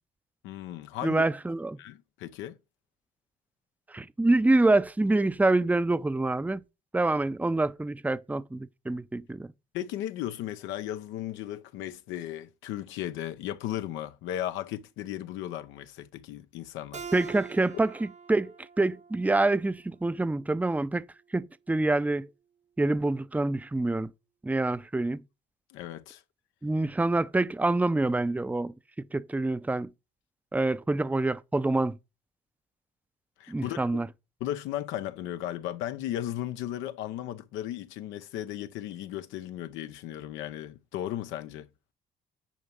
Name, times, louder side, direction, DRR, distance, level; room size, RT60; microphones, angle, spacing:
voice 1, 0.4-1.2 1.8-2.6 9.7-17.1 25.7-26.2 33.4-33.8 34.4-41.7, left 12 dB, 80° left, 0.8 m, -36 dB
voice 2, 1.0-1.8 3.9-6.6 6.9-9.5 17.1-21.0 21.3-22.3 22.8-24.1 24.4-25.2 26.6-28.7 29.1-29.9 30.5-32.0 33.5-34.1, right 2 dB, 10° right, 0.6 m, -26 dB
Keyboard (musical), 16.9-20.2, right 6 dB, 35° right, 1.0 m, -44 dB
10.0 x 4.6 x 5.4 m
supercardioid pair, 70°, 20 cm